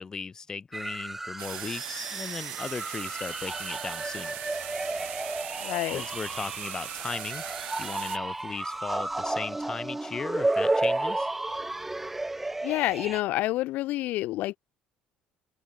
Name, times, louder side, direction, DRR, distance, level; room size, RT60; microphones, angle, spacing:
voice 1, 0.0-4.3 5.9-7.4 7.8-11.3, left 5 dB, 20° left, 4.2 m, -37 dB
sound 1, 0.7-13.2, right 2 dB, 5° right, 0.9 m, -32 dB
sound 2, 1.4-8.2, right 21 dB, 80° right, 2.5 m, -39 dB
voice 2, 5.6-6.0 12.6-14.6, left 17 dB, 65° left, 2.1 m, -28 dB
open air
cardioid pair, 170°, 3 cm